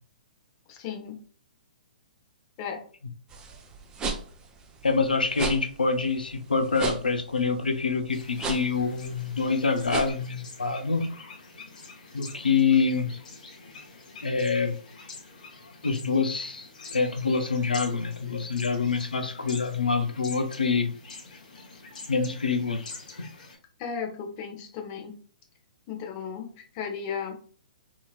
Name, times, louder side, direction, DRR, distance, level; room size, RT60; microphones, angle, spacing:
voice 1, 0.7-1.2 2.6-2.8 23.8-25.1 25.9-27.3, left 6 dB, 35° left, 2 dB, 0.8 m, -35 dB
sound 1, 3.3-10.1, right 4 dB, 15° right, 0.5 m, -36 dB
voice 2, 4.8-11.1 12.1-13.2 14.2-14.7 15.8-20.9 22.1-22.9 23.2-23.3, left 4 dB, 85° left, 7 dB, 0.5 m, -26 dB
sound 2, 8.1-23.6, left 3 dB, 60° left, 1.0 m, -46 dB
2.9 x 2.8 x 2.4 m, 0.43 s
figure-of-eight pair, 125°, 5 cm